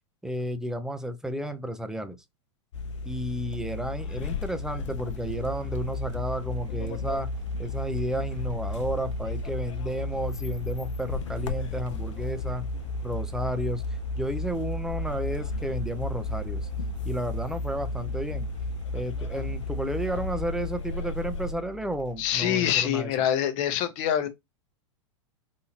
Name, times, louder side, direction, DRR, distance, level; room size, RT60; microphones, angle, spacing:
voice 1, 0.2-2.2 3.0-7.3 7.6-12.6 13.0-13.8 14.1-16.7 17.0-18.5 18.9-23.1, right 1 dB, 5° right, 0.5 m, -32 dB
sound 1, 2.7-21.5, left 3 dB, 75° left, 0.6 m, -34 dB
sound 2, 5.4-23.2, left 1 dB, 85° right, 1.1 m, -38 dB
voice 2, 22.2-24.3, left 10 dB, 45° left, 0.9 m, -25 dB
4.1 x 2.6 x 2.8 m
hypercardioid pair, 105°, 16 cm